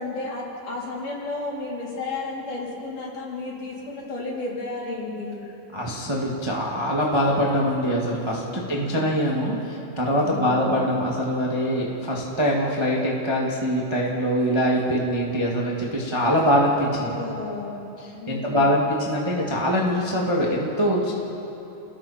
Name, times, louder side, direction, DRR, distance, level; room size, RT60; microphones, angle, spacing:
voice 1, 0.0-5.4 8.5-9.1 10.1-10.8 17.0-17.8 18.1-18.7, left 3 dB, 50° left, -5 dB, 5.4 m, -33 dB
voice 2, 5.7-17.1 18.0-21.1, equal, 15° right, -3 dB, 1.0 m, -23 dB
30.0 x 20.0 x 4.5 m, 3.0 s
omnidirectional pair, 4.7 m